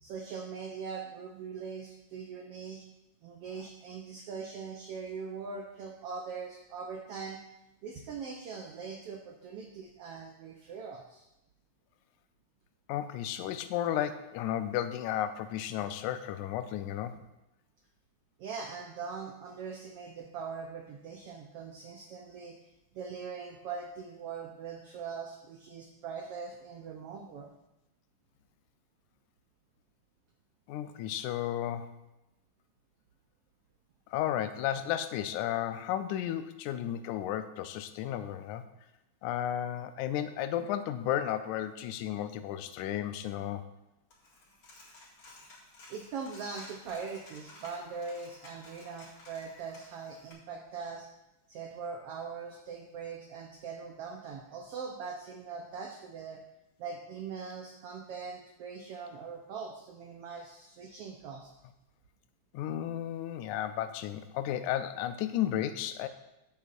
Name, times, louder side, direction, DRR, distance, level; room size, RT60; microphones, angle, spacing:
voice 1, 0.0-2.9 3.2-7.4 7.8-11.2 18.4-22.6 22.9-27.5 45.9-51.1 51.5-56.4 56.8-61.5, right 5 dB, 75° right, 1 dB, 1.4 m, -41 dB
voice 2, 12.9-17.2 30.7-31.9 34.1-38.7 39.2-43.7 62.5-66.1, left 11 dB, 80° left, 10 dB, 1.9 m, -33 dB
Coin (dropping), 44.1-50.3, left 2 dB, 45° left, 2.7 m, -54 dB
14.5 x 7.0 x 2.6 m, 0.92 s
omnidirectional pair, 3.6 m